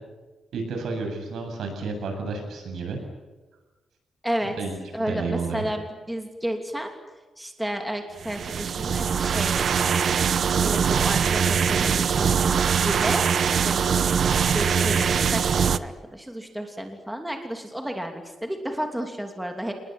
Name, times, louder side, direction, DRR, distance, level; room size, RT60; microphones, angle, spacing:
voice 1, 0.5-3.0 4.4-4.7 5.1-5.7, right 4 dB, 80° right, 4 dB, 7.9 m, -31 dB
voice 2, 4.2-4.6 4.9-6.9 7.4-9.6 9.9-10.0 10.6-12.4 12.8-13.3 13.6-13.8 14.5-19.7, equal, 5° right, 3 dB, 2.9 m, -31 dB
sound 1, 8.2-15.8, right 7 dB, 55° right, 0.8 m, -22 dB
28.5 x 20.5 x 9.5 m, 1.2 s
wide cardioid pair, 140°, 0 cm